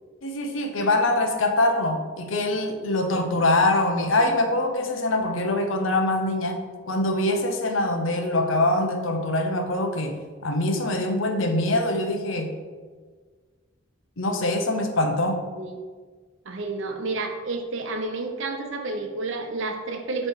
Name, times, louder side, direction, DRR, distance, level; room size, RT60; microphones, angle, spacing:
voice 1, 0.2-10.2 10.4-12.5 14.2-15.4, left 2 dB, 75° left, 4 dB, 0.8 m, -24 dB
voice 2, 16.4-20.3, right 3 dB, 70° right, 4 dB, 0.8 m, -30 dB
7.4 x 3.2 x 4.7 m, 1.5 s
head